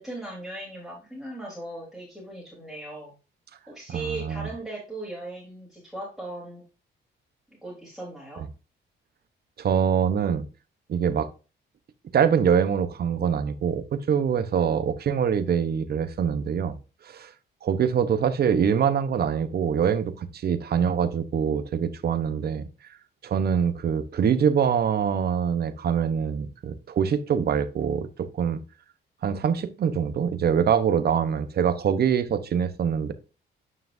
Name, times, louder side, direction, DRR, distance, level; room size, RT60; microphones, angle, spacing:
voice 1, 0.0-3.1 3.7-6.6 7.6-8.4, right 2 dB, ahead, 3.6 m, -38 dB
voice 2, 3.9-4.5 9.6-10.4 10.9-11.3 12.1-16.7 17.0-17.3 17.6-22.7 23.2-28.6 29.2-33.1, right 7 dB, 55° right, 1.0 m, -24 dB
9.5 x 5.8 x 2.7 m
cardioid pair, 90°, 20 cm